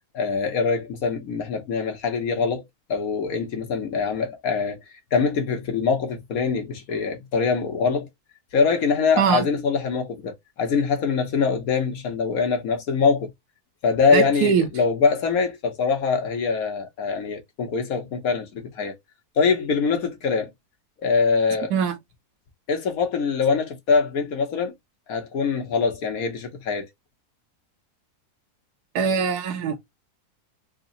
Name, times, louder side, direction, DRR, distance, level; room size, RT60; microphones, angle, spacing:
voice 1, 0.1-2.6 2.9-4.8 5.1-8.1 8.5-13.3 13.8-19.0 19.4-20.5 21.0-21.7 22.7-24.7 25.1-26.9, left 5 dB, 65° left, 1.3 m, -23 dB
voice 2, 14.1-14.7 21.7-22.0 28.9-29.8, right 7 dB, 75° right, 1.2 m, -22 dB
3.7 x 2.0 x 3.8 m
omnidirectional pair, 1.7 m